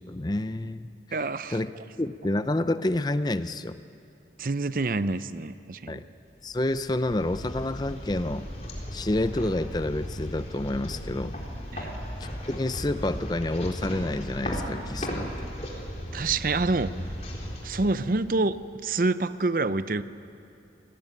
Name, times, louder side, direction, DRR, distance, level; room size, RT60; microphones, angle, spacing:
voice 1, 0.1-0.9 1.5-1.7 2.0-3.8 5.9-6.0 6.4-8.5 8.9-11.4 12.2-15.3, left 1 dB, 25° left, 12 dB, 0.5 m, -28 dB
voice 2, 1.1-1.6 4.4-6.0 11.7-12.0 16.1-16.9 17.6-18.6 18.8-20.0, right 3 dB, 50° right, 13 dB, 0.6 m, -27 dB
sound 1, 6.5-18.5, equal, 40° left, 3.8 m, -36 dB
26.0 x 18.0 x 9.2 m, 2.6 s
head